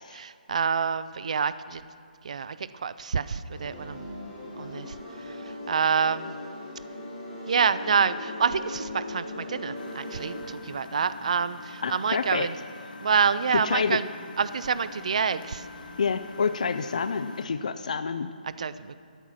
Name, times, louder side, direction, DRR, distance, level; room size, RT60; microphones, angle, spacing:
voice 1, 0.1-1.8 2.3-2.6 2.8-4.0 4.6-4.9 5.7-6.3 7.5-12.5 13.0-14.0 14.4-15.6 18.6-18.7, right 6 dB, 45° right, 15 dB, 0.3 m, -27 dB
sound 1, 3.5-10.4, left 1 dB, 25° left, 3.8 m, -39 dB
Engine, 9.7-17.5, left 3 dB, 65° left, 1.8 m, -44 dB
voice 2, 11.8-12.5 13.5-14.0 16.0-18.3, left 5 dB, 50° left, 10 dB, 0.4 m, -28 dB
12.5 x 9.0 x 6.2 m, 2.4 s
hypercardioid pair, 175°, 5 cm